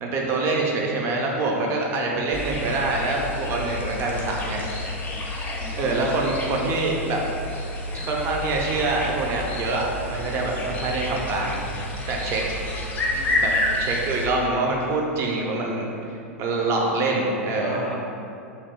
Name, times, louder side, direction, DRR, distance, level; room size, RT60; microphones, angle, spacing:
voice 1, 0.0-4.7 5.8-7.2 7.9-11.6 12.1-12.4 13.4-13.5 13.8-15.9 16.4-17.8, right 3 dB, 35° right, -1 dB, 0.5 m, -25 dB
voice 2, 1.8-2.2 5.5-6.2 13.1-13.8 15.8-16.1 16.8-18.0, left 2 dB, 80° left, -1 dB, 0.4 m, -39 dB
sound 1, 2.3-14.3, left 1 dB, 20° left, 0.4 m, -29 dB
2.9 x 2.1 x 2.9 m, 2.6 s
figure-of-eight pair, 90°, 8 cm